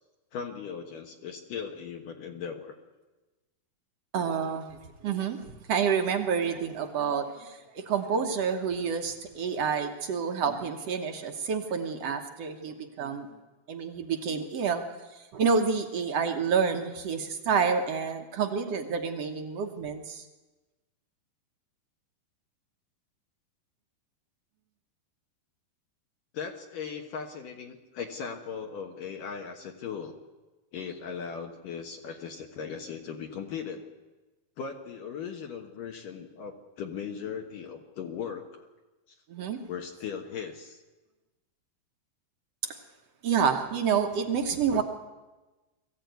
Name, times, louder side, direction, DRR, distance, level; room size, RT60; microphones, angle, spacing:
voice 1, 0.3-2.8 26.3-30.2 30.7-33.8 34.6-38.7 39.1-39.2 39.7-40.8, left 6 dB, 65° left, 3 dB, 2.8 m, -38 dB
voice 2, 4.1-4.7 5.0-5.4 5.7-13.3 13.7-14.8 15.1-20.2 39.3-39.6 43.2-44.8, right 6 dB, 60° right, 6 dB, 1.7 m, -28 dB
22.0 x 15.0 x 9.4 m, 1.2 s
omnidirectional pair, 4.5 m